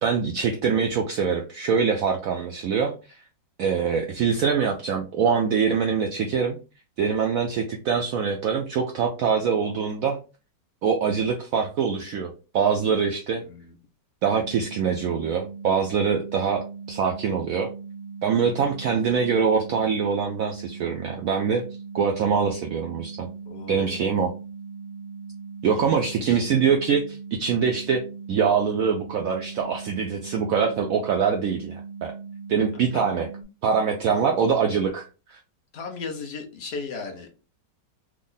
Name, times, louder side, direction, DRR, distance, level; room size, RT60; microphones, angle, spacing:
voice 1, 0.0-2.9 3.6-6.6 7.0-10.2 10.8-13.4 14.2-17.7 18.2-21.6 21.9-23.3 23.7-24.3 25.6-32.1 32.5-33.3 33.6-35.4, right 6 dB, 85° right, 2 dB, 0.7 m, -24 dB
voice 2, 13.4-13.7 23.5-24.1 25.7-26.5 32.7-33.2 34.1-34.3 35.7-37.3, left 4 dB, 65° left, 3 dB, 0.6 m, -37 dB
sound 1, 14.3-33.4, right 5 dB, 50° right, 0.7 m, -39 dB
3.5 x 2.1 x 3.8 m, 0.33 s
omnidirectional pair, 2.0 m